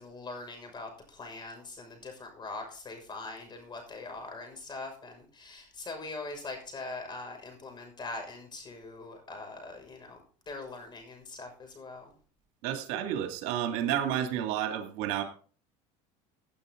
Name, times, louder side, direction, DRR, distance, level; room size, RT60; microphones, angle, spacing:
voice 1, 0.0-10.2 10.5-12.1, left 3 dB, 30° left, 4 dB, 6.3 m, -42 dB
voice 2, 12.6-15.2, right 10 dB, 75° right, 5 dB, 2.5 m, -31 dB
17.5 x 8.5 x 3.9 m, 0.41 s
supercardioid pair, 120°, 16 cm